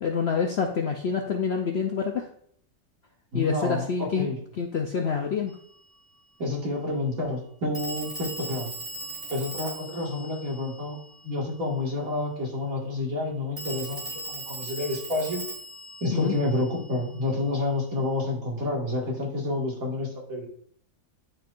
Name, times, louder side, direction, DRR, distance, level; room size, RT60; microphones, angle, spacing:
voice 1, 0.0-2.3 3.3-4.3 4.6-5.5 16.1-16.3, left 6 dB, 60° left, 3 dB, 0.7 m, -27 dB
voice 2, 3.3-4.4 6.4-8.7 9.3-11.0 11.2-15.4 16.0-20.5, left 2 dB, 60° right, -3 dB, 2.3 m, -29 dB
Telephone, 5.5-5.6 7.7-11.4 13.6-17.3, right 2 dB, 25° right, 2.6 m, -39 dB
11.5 x 4.4 x 2.5 m, 0.64 s
omnidirectional pair, 1.7 m